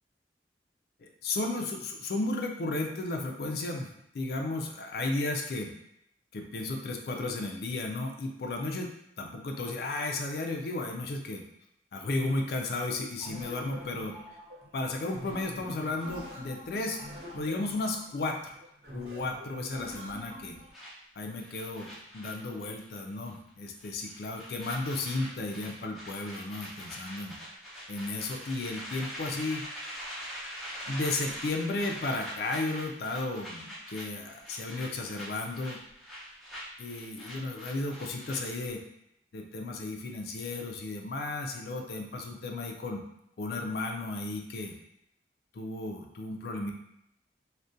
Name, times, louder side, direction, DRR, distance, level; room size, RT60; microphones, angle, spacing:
voice 1, 1.0-5.7 6.3-8.9 9.2-11.4 11.9-14.2 14.7-17.0 17.3-18.5 18.9-20.6 21.2-27.4 27.9-30.1 30.9-35.8 36.8-38.8 39.3-43.0 43.4-44.7 45.5-46.7, left 2 dB, 60° left, 2 dB, 0.3 m, -34 dB
sound 1, 13.2-20.7, equal, 65° right, 0.6 m, -45 dB
sound 2, 20.7-23.0 23.2-23.5 23.8-38.7, equal, ahead, 0.6 m, -43 dB
2.4 x 2.1 x 2.6 m, 0.77 s
head